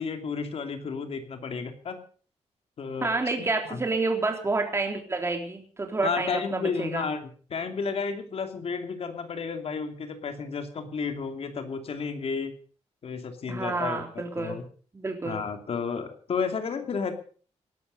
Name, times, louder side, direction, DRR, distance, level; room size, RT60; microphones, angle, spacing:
voice 1, 0.0-2.0 2.8-3.1 3.4-3.8 6.0-12.5 13.0-14.6 15.2-17.1, left 5 dB, 55° left, 7 dB, 2.7 m, -32 dB
voice 2, 3.0-7.1 13.5-14.6 14.9-15.4, right 3 dB, 20° right, 3 dB, 3.4 m, -29 dB
19.0 x 12.0 x 5.4 m, 0.43 s
wide cardioid pair, 145°, 12 cm